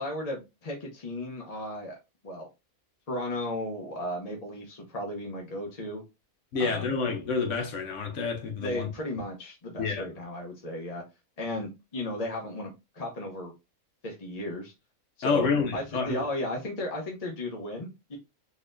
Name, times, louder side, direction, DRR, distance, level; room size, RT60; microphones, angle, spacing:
voice 1, 0.0-2.0 2.2-2.5 3.1-6.0 6.6-6.9 8.6-11.0 11.4-13.5 14.0-14.7 15.2-18.2, left 1 dB, 35° left, 0.7 m, -35 dB
voice 2, 6.5-8.9 9.8-10.0 15.2-16.2, left 5 dB, 60° left, 1.1 m, -28 dB
4.0 x 2.9 x 2.6 m
omnidirectional pair, 1.6 m